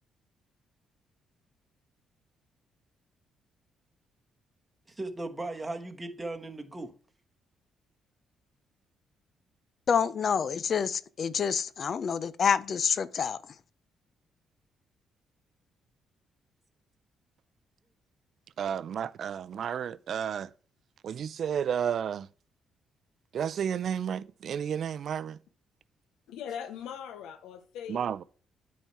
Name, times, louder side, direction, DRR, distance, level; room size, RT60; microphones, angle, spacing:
voice 1, 4.9-6.9, right 2 dB, 15° right, 1.2 m, -37 dB
voice 2, 9.9-13.4, left 7 dB, 50° left, 0.4 m, -27 dB
voice 3, 18.6-20.5 21.0-22.3 23.3-25.4 27.9-28.2, right 8 dB, 60° right, 0.4 m, -32 dB
voice 4, 26.3-28.2, left 8 dB, 90° left, 0.6 m, -40 dB
9.1 x 4.3 x 4.6 m
cardioid pair, 90°, 0 cm